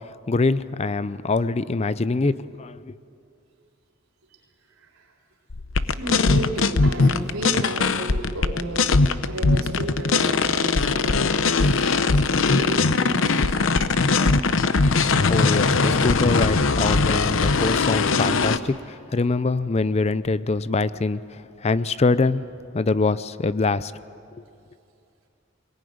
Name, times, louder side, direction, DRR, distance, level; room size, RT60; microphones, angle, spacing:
voice 1, 0.3-2.9 15.3-22.5 22.7-23.9, left 3 dB, 30° left, 16 dB, 0.5 m, -24 dB
voice 2, 4.7-5.1 5.8-8.8 9.3-14.3, right 1 dB, 90° right, 0 dB, 4.0 m, -33 dB
sound 1, 5.5-18.6, left 4 dB, 75° left, 0.8 m, -20 dB
22.5 x 19.0 x 9.4 m, 2.5 s
head